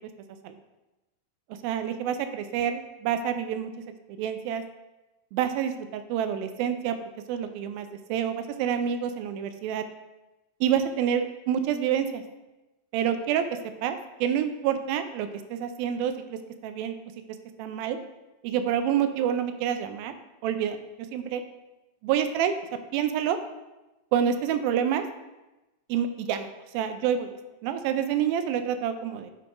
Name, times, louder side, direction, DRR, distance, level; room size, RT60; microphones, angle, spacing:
voice 1, 1.6-3.7 4.1-4.6 5.3-7.0 7.3-9.8 10.6-12.2 12.9-16.9 17.6-18.0 18.4-20.1 20.4-20.8 21.1-21.4 22.0-22.5 22.9-23.4 24.1-25.1 25.9-26.5 26.7-27.3 27.6-29.3, right 9 dB, 85° right, 8 dB, 2.3 m, -27 dB
8.5 x 3.7 x 4.8 m, 1.0 s
omnidirectional pair, 4.2 m